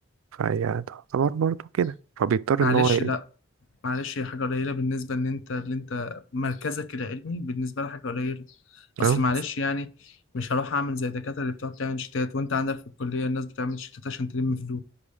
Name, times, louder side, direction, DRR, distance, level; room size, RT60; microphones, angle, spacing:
voice 1, 0.4-3.1 9.0-9.2, right 7 dB, 85° right, 0.3 m, -24 dB
voice 2, 2.6-3.2 3.8-8.4 8.7-14.8, left 3 dB, 70° left, 0.6 m, -29 dB
5.4 x 4.9 x 5.4 m
head